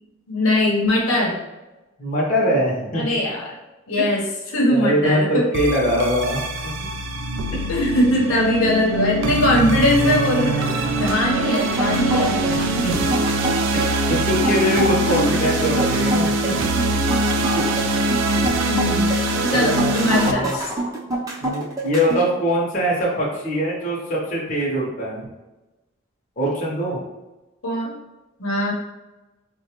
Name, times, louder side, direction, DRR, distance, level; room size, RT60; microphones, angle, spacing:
voice 1, 0.3-1.4 2.9-3.5 3.9-5.4 7.7-10.7 11.0-12.4 15.0-15.3 18.7-19.1 19.5-20.7 27.6-27.9 28.4-28.7, left 1 dB, 90° left, -3 dB, 0.9 m, -20 dB
voice 2, 2.0-3.1 4.0-4.1 4.7-6.4 12.4-13.1 13.7-16.6 17.5-17.9 19.5-20.6 21.4-25.2 26.4-27.0, equal, 40° left, -4 dB, 0.8 m, -23 dB
sound 1, 5.5-20.3, right 2 dB, 60° right, 0.3 m, -23 dB
sound 2, 11.6-22.2, right 1 dB, 15° right, 0.6 m, -26 dB
4.1 x 2.2 x 2.9 m, 1.1 s
head